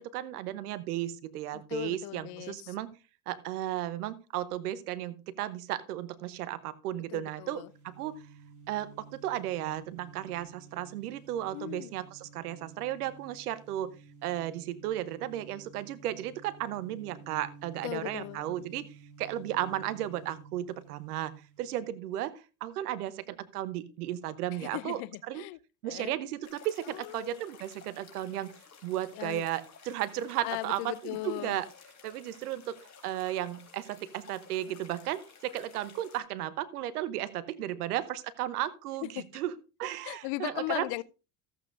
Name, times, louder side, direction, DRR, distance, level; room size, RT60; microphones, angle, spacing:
voice 1, 0.0-2.9 3.3-8.1 8.7-13.9 14.2-18.9 19.2-21.3 21.6-22.3 22.6-25.0 25.3-25.4 25.8-28.5 28.8-31.7 32.0-32.7 33.0-39.5 39.8-40.9, right 13 dB, 85° right, 1.0 m, -34 dB
voice 2, 1.5-2.7 7.1-7.7 11.5-11.9 17.8-18.7 24.5-26.1 26.9-27.4 29.1-29.5 30.4-31.6 39.0-39.4 40.0-41.0, left 20 dB, 60° left, 0.6 m, -38 dB
sound 1, 7.5-22.0, right 5 dB, 40° right, 2.8 m, -53 dB
sound 2, 26.4-36.2, left 6 dB, 40° left, 3.7 m, -54 dB
14.5 x 8.1 x 2.6 m
hypercardioid pair, 75°, 44 cm